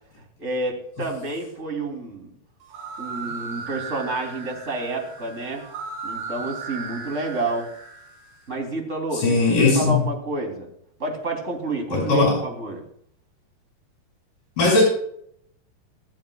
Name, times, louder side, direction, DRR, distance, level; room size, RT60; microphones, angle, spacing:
voice 1, 0.4-2.3 3.0-5.6 6.0-7.7 8.5-10.7 11.0-12.8, right 2 dB, 20° right, 2 dB, 2.9 m, -29 dB
sound 1, 2.6-8.4, right 5 dB, 70° right, 6.2 m, -36 dB
voice 2, 9.1-10.0 11.9-12.4 14.6-14.8, left 3 dB, 60° left, -3 dB, 8.2 m, -18 dB
22.0 x 15.0 x 2.3 m, 0.67 s
omnidirectional pair, 4.5 m